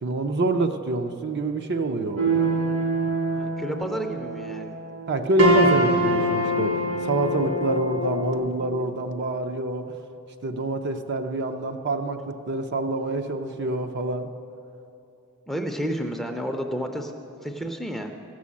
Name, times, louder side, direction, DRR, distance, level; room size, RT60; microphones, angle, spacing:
voice 1, 0.0-2.5 5.1-10.0 10.4-14.3, right 2 dB, 55° right, 6 dB, 0.6 m, -26 dB
sound 1, 2.2-8.4, right 1 dB, 80° right, 2.8 m, -24 dB
voice 2, 3.3-4.7 15.5-17.1 17.4-18.1, equal, ahead, 3 dB, 0.5 m, -30 dB
14.0 x 6.3 x 8.4 m, 2.7 s
head